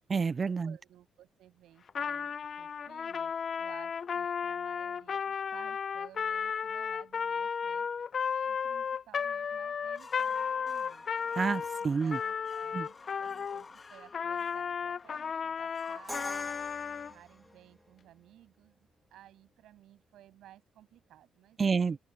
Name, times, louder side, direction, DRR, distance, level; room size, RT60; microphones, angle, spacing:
voice 1, 0.1-0.8 11.4-12.2 12.7-12.9 21.6-22.0, right 5 dB, 35° right, 0.4 m, -29 dB
voice 2, 0.6-7.9 8.4-11.1 12.0-16.5 17.1-22.0, right 13 dB, 80° right, 7.9 m, -57 dB
Trumpet, 1.9-13.6 14.1-17.1, left 6 dB, 50° left, 0.8 m, -34 dB
sound 1, 9.8-17.9, left 4 dB, 35° left, 2.4 m, -53 dB
Crash cymbal, 16.1-18.0, right 1 dB, 5° right, 2.4 m, -44 dB
cardioid pair, 90°, 0 cm